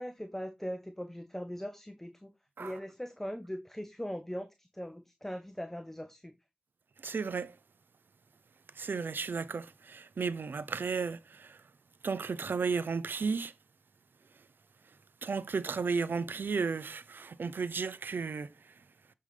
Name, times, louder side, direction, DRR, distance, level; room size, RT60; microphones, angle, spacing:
voice 1, 0.0-2.3 2.6-6.3, equal, 10° left, 0.9 m, -40 dB
voice 2, 7.0-7.6 8.7-11.6 12.0-13.5 15.2-18.7, right 5 dB, 85° right, 0.5 m, -34 dB
7.5 x 5.4 x 3.3 m
cardioid pair, 40°, 3 cm